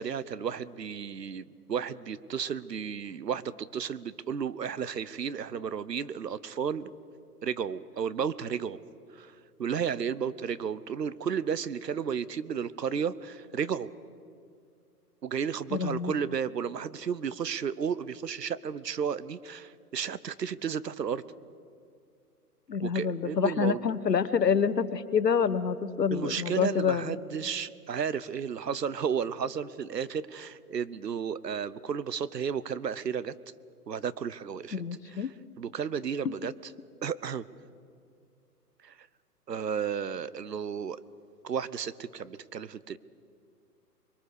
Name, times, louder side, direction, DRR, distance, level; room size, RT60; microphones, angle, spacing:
voice 1, 0.0-6.9 7.4-8.8 9.1-9.3 9.6-13.9 15.2-21.2 22.8-23.8 26.1-33.3 33.9-35.3 35.6-36.7 37.0-37.4 38.8-38.9 39.5-41.0 41.4-43.0, right 7 dB, 80° right, 17 dB, 1.0 m, -33 dB
voice 2, 15.7-16.1 22.7-27.1 34.7-35.3, left 6 dB, 85° left, 14 dB, 1.3 m, -27 dB
25.5 x 22.5 x 6.6 m, 2.4 s
figure-of-eight pair, 125°, 48 cm